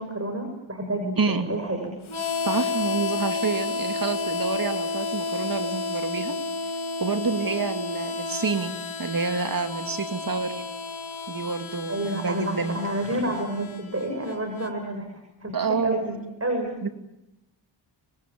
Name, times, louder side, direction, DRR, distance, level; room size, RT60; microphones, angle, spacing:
voice 1, 0.0-1.9 11.9-15.1 15.4-16.8, right 1 dB, 30° right, 3 dB, 6.8 m, -29 dB
voice 2, 1.2-1.5 2.4-6.3 6.6-6.7 7.0-10.6 11.3-12.8 15.5-16.0 16.8-16.9, right 4 dB, 45° right, 8 dB, 2.7 m, -28 dB
Harmonica, 2.1-14.7, left 4 dB, 85° left, 2.5 m, -31 dB
25.5 x 22.5 x 8.7 m, 0.90 s
cardioid pair, 55°, 47 cm